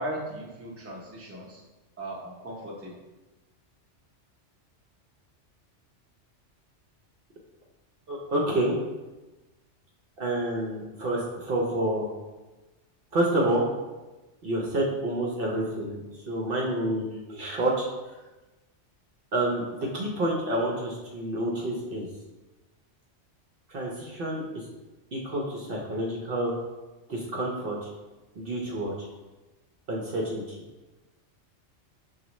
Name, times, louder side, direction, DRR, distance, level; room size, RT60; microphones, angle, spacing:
voice 1, 0.0-1.6 2.0-2.9, right 1 dB, 15° right, -3 dB, 0.6 m, -37 dB
voice 2, 8.1-8.8 10.2-12.1 13.1-13.7 14.4-17.9 19.3-22.1 23.7-24.6 25.1-26.6 27.1-27.9 28.4-29.1 29.9-30.6, right 1 dB, 55° right, -2 dB, 0.8 m, -28 dB
6.0 x 2.4 x 2.9 m, 1.1 s
omnidirectional pair, 1.2 m